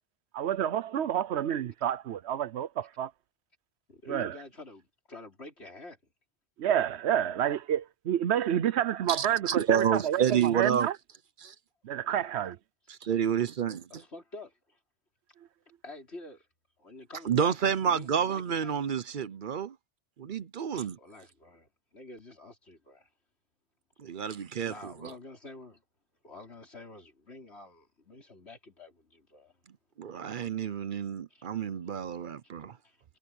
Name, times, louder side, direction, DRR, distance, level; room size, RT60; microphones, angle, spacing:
voice 1, 0.3-3.1 4.1-4.3 6.6-11.0 11.8-12.6, right 10 dB, 90° right, 1.0 m, -29 dB
voice 2, 3.9-6.1 12.0-12.3 13.9-14.8 15.8-16.5 16.8-17.6 17.8-18.9 20.7-23.1 24.7-25.8 26.2-29.6 31.3-31.5 31.7-31.9 32.6-33.0, left 2 dB, 85° left, 4.8 m, -48 dB
voice 3, 9.1-10.9 11.4-11.5 12.9-13.8 17.3-19.7 20.2-21.0 24.0-25.1 30.0-32.7, right 8 dB, 55° right, 0.8 m, -29 dB
omnidirectional pair, 1.1 m